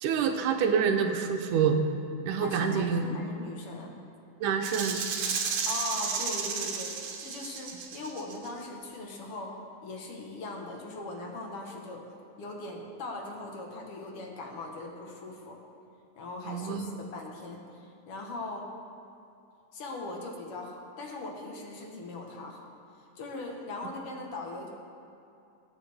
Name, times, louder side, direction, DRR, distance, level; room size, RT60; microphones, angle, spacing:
voice 1, 0.0-1.8 2.3-3.1 4.4-5.1 16.5-16.9, right 6 dB, 90° right, 5 dB, 2.2 m, -27 dB
voice 2, 2.4-4.0 5.7-6.9 7.2-9.6 9.8-12.1 12.4-15.6 16.2-18.7 19.7-22.7 23.0-24.7, left 2 dB, 55° left, 1 dB, 1.9 m, -40 dB
Rattle (instrument), 4.6-8.5, right 6 dB, 75° right, 2.4 m, -33 dB
20.5 x 8.0 x 3.5 m, 2.8 s
omnidirectional pair, 3.6 m